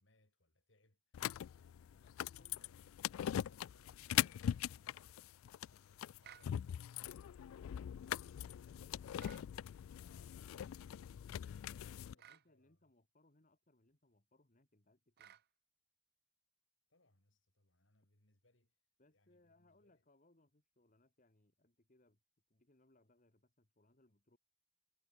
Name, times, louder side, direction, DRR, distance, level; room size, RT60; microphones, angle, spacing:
voice 1, 0.0-3.0 3.2-5.2 5.5-9.5 10.1-11.3 11.6-12.9 16.9-18.8 19.1-20.1, left 2 dB, 65° left, 4.3 m, -75 dB
sound 1, 1.1-12.1, left 10 dB, 90° left, 0.3 m, -41 dB
voice 2, 1.8-2.7 5.7-5.8 8.6-9.3 11.6-15.4 19.0-22.2 22.5-24.4, left 2 dB, 40° left, 2.0 m, -72 dB
sound 2, 6.2-6.5 9.2-9.5 12.2-12.5 15.2-15.5, right 10 dB, 50° right, 0.5 m, -58 dB
head